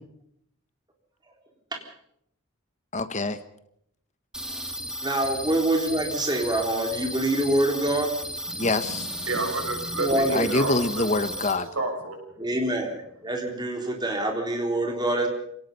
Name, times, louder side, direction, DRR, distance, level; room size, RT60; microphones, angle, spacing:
voice 1, 2.9-3.4 8.6-9.1 10.3-11.7, left 2 dB, 35° left, 11 dB, 1.1 m, -25 dB
sound 1, 4.3-11.5, equal, 5° right, 2.5 m, -34 dB
voice 2, 5.0-8.1 10.0-10.7 12.4-12.9 13.2-15.3, right 1 dB, 20° right, 2 dB, 3.8 m, -25 dB
voice 3, 8.5-11.1 11.7-12.4, right 2 dB, 85° right, 3 dB, 6.4 m, -31 dB
27.5 x 18.0 x 5.5 m, 0.71 s
head